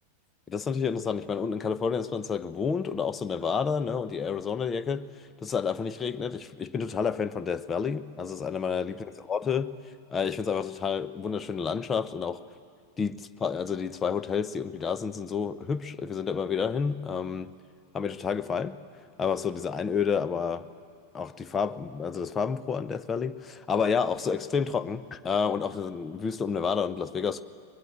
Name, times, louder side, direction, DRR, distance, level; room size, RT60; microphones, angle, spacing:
voice 1, 0.5-5.1 5.4-9.8 10.1-12.4 13.0-17.5 17.9-18.8 19.2-20.7 21.1-27.4, left 6 dB, 20° left, 0.7 m, -30 dB
23.0 x 21.0 x 7.6 m
figure-of-eight pair, 90°, 0 cm